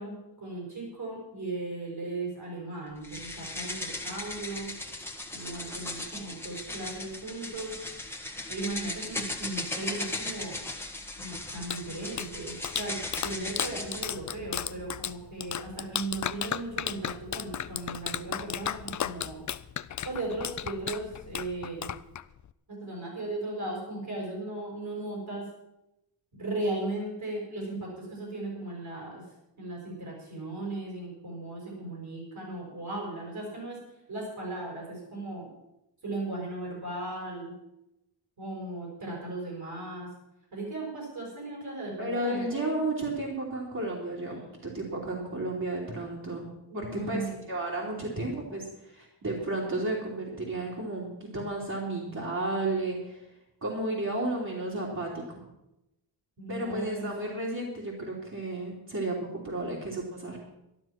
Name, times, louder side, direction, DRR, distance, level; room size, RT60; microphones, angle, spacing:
voice 1, 0.0-4.7 5.3-7.7 8.5-10.6 11.2-19.4 20.0-21.9 22.7-25.5 26.3-29.2 29.6-33.8 34.1-35.5 36.0-37.5 38.4-40.1 40.5-42.8 46.7-47.4 56.4-57.4, right 2 dB, 65° right, -3 dB, 5.8 m, -37 dB
sound 1, 3.0-14.1, left 2 dB, 5° left, 1.4 m, -37 dB
Clapping, 11.4-22.5, left 9 dB, 50° left, 0.5 m, -35 dB
voice 2, 42.0-46.5 46.7-53.3 53.6-55.4 56.5-60.4, right 2 dB, 45° right, -6 dB, 3.4 m, -33 dB
12.5 x 12.0 x 6.0 m, 0.89 s
wide cardioid pair, 135°, 40 cm